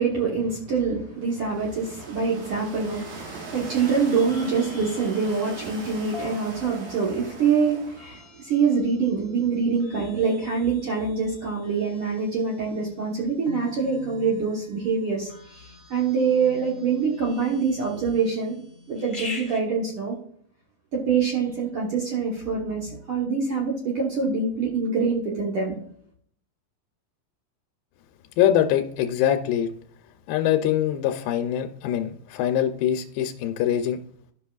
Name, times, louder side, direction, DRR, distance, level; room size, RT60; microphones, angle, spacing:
voice 1, 0.0-18.5 18.9-20.2 20.9-25.8, right 5 dB, 60° right, -4 dB, 1.5 m, -25 dB
sound 1, 1.2-8.3, right 3 dB, 80° right, 3.2 m, -41 dB
sound 2, 2.9-19.6, left 3 dB, 60° left, 0.5 m, -45 dB
voice 2, 28.4-29.7 30.3-34.0, left 10 dB, 85° left, 5 dB, 2.3 m, -23 dB
14.0 x 5.6 x 2.3 m, 0.63 s
omnidirectional pair, 4.0 m